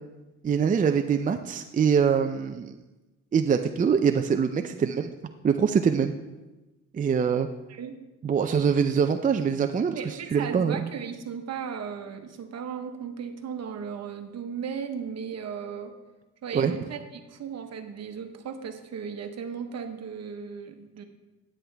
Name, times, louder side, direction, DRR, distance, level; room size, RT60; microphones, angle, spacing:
voice 1, 0.4-2.7 3.3-5.1 5.4-6.1 6.9-7.5 8.2-10.9 16.5-16.7, right 6 dB, 30° right, 7 dB, 0.4 m, -24 dB
voice 2, 9.9-15.9 16.4-21.0, right 7 dB, 60° right, 6 dB, 1.1 m, -36 dB
10.0 x 8.6 x 3.4 m, 1.1 s
cardioid pair, 90°, 30 cm